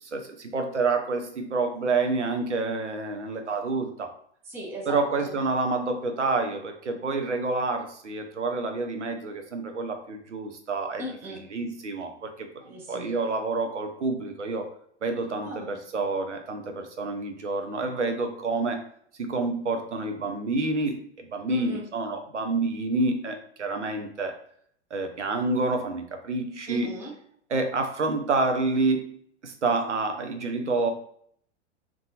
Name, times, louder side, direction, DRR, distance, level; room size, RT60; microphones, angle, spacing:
voice 1, 0.0-4.1 4.9-11.0 11.5-14.7 15.0-18.8 19.2-24.3 24.9-26.9 27.5-29.2 29.4-30.9, right 3 dB, 90° right, 5 dB, 0.6 m, -28 dB
voice 2, 4.4-5.4 11.0-11.4 12.6-13.2 15.4-15.8 21.5-21.8 26.7-27.1, equal, 5° right, -1 dB, 0.4 m, -37 dB
2.5 x 2.3 x 2.7 m, 0.64 s
figure-of-eight pair, 100°, 35 cm